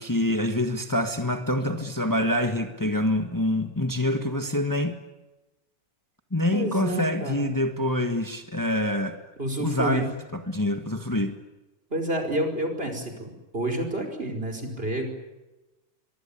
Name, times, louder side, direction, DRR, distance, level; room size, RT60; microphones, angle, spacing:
voice 1, 0.0-5.0 6.3-9.2 9.6-11.4, left 1 dB, 25° left, 7 dB, 0.4 m, -26 dB
voice 2, 6.5-7.5 9.4-10.1 11.9-15.1, right 1 dB, 15° right, 4 dB, 5.1 m, -29 dB
24.0 x 23.5 x 8.7 m, 1.1 s
omnidirectional pair, 3.4 m